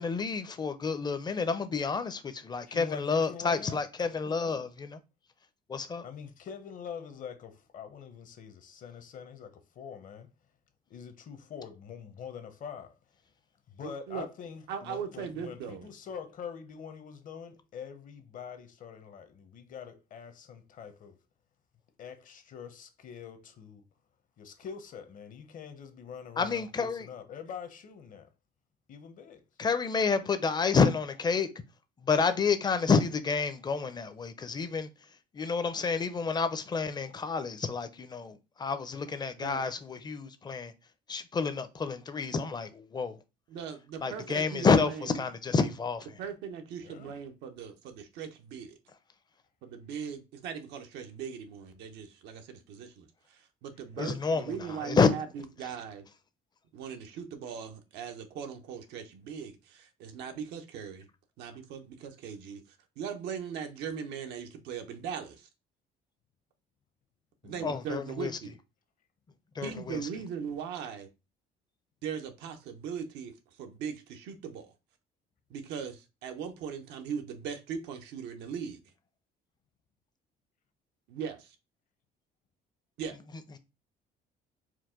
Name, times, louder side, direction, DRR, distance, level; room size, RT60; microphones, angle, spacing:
voice 1, 0.0-5.0 5.7-6.1 26.4-27.1 29.6-31.5 32.0-34.9 35.3-40.7 41.1-43.2 44.0-46.1 54.0-54.5 54.8-55.1 67.6-68.3 69.6-70.0, left 5 dB, 25° left, 0.5 m, -29 dB
voice 2, 2.7-3.8 6.0-10.3 10.9-12.9 13.7-21.2 22.0-23.8 24.4-28.3 28.9-29.4 46.8-47.1 67.4-67.8 69.6-69.8, left 7 dB, 50° left, 0.8 m, -44 dB
voice 3, 13.8-14.3 14.7-15.9 39.4-39.7 43.5-45.2 46.2-48.8 49.6-56.1 56.7-61.1 61.4-62.6 63.0-65.5 67.4-68.6 69.6-71.1 72.0-73.3 73.6-74.7 75.5-78.8 81.1-81.6 83.0-83.2, right 7 dB, 90° right, 0.7 m, -39 dB
4.6 x 2.2 x 3.6 m
cardioid pair, 110°, 17 cm